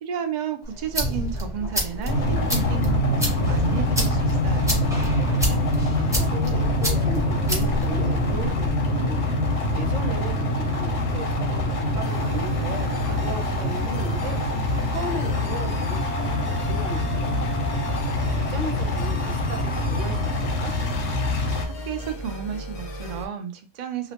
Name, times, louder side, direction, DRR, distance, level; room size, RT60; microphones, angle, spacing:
voice 1, 0.0-4.8 21.6-24.1, right 7 dB, 65° right, 6 dB, 0.4 m, -32 dB
sound 1, 0.6-8.7, equal, 5° right, 0.4 m, -30 dB
sound 2, 2.1-21.6, left 1 dB, 80° left, 1.0 m, -24 dB
voice 2, 6.0-9.3 9.7-14.4 14.8-17.0 17.4-17.8 18.3-20.7, right 3 dB, 80° right, 4 dB, 1.0 m, -36 dB
sound 3, 12.0-23.3, left 1 dB, 65° left, 0.4 m, -36 dB
2.8 x 2.0 x 2.8 m, 0.35 s
omnidirectional pair, 1.3 m